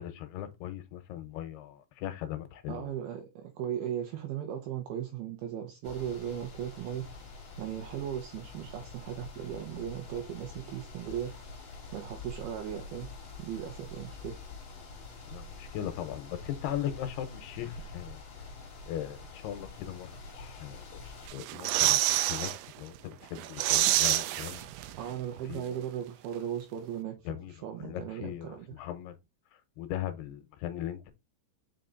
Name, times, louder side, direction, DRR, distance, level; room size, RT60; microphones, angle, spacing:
voice 1, 0.0-2.9 15.3-18.2 18.9-20.9 21.3-22.5 22.8-24.7 25.5-25.8 27.3-27.5 27.8-29.2 29.8-31.1, left 11 dB, 75° left, 2.7 m, -38 dB
voice 2, 2.7-7.1 7.6-11.4 11.9-13.1 13.4-14.4 25.0-27.2 27.5-28.7, right 10 dB, 75° right, 2.6 m, -37 dB
sound 1, 5.8-21.3, left 3 dB, 40° left, 2.0 m, -46 dB
sound 2, 21.3-22.6 23.0-23.1 23.4-25.1 25.4-25.5, right 14 dB, 90° right, 2.2 m, -27 dB
5.8 x 5.2 x 3.9 m
omnidirectional pair, 5.1 m